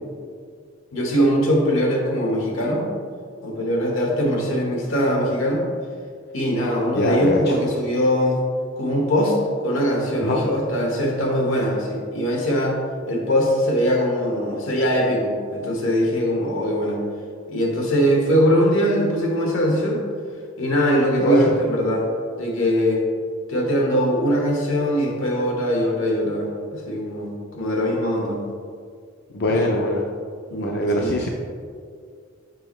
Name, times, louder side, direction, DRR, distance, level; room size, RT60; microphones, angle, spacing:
voice 1, 0.9-2.9 3.4-5.6 6.3-8.4 8.8-12.8 13.1-17.0 17.5-20.0 20.6-22.1 22.4-23.0 23.5-28.4 29.6-29.9 30.5-30.7 31.0-31.1, equal, 85° left, -1 dB, 1.3 m, -21 dB
voice 2, 7.0-7.6 10.2-10.4 21.2-21.6 29.3-30.0 30.6-31.3, left 1 dB, 55° left, -1 dB, 0.5 m, -21 dB
6.8 x 5.2 x 3.1 m, 2.2 s
head